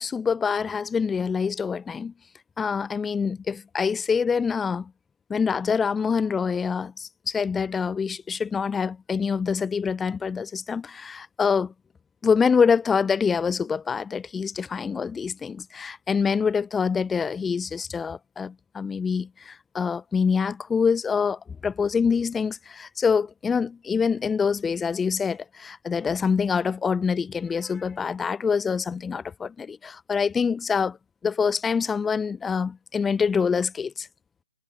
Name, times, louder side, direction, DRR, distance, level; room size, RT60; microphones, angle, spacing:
voice 1, 0.0-2.1 2.6-4.9 5.3-11.7 12.2-31.0 31.2-34.1, left 6 dB, 10° left, 0.4 m, -25 dB
figure-of-eight pair, 130°, 0 cm